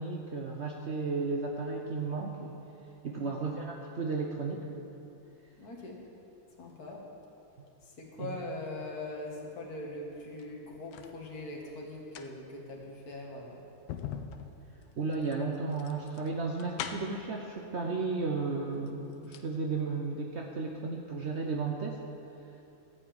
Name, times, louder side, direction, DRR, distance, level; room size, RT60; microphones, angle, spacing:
voice 1, 0.0-2.5 3.0-4.6 8.2-8.4 15.0-22.0, right 4 dB, 85° right, 0 dB, 0.6 m, -34 dB
voice 2, 5.6-6.0 6.6-7.0 7.8-13.6, left 2 dB, 50° left, -1 dB, 2.0 m, -42 dB
sound 1, 10.2-11.2 11.9-17.3 18.3-18.4 18.7-19.5 19.8-19.9, left 8 dB, 75° left, 1.4 m, -43 dB
13.5 x 5.6 x 8.6 m, 2.8 s
omnidirectional pair, 2.2 m